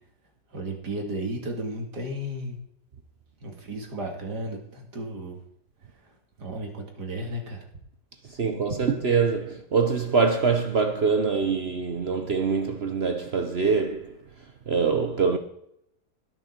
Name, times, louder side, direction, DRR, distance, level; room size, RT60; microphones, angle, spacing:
voice 1, 0.5-2.6 3.4-5.4 6.4-7.7 8.7-8.8, right 1 dB, 80° right, 2.8 m, -34 dB
voice 2, 8.3-14.1 14.7-15.4, right 5 dB, 45° right, 1.0 m, -24 dB
20.0 x 6.7 x 4.4 m
omnidirectional pair, 1.7 m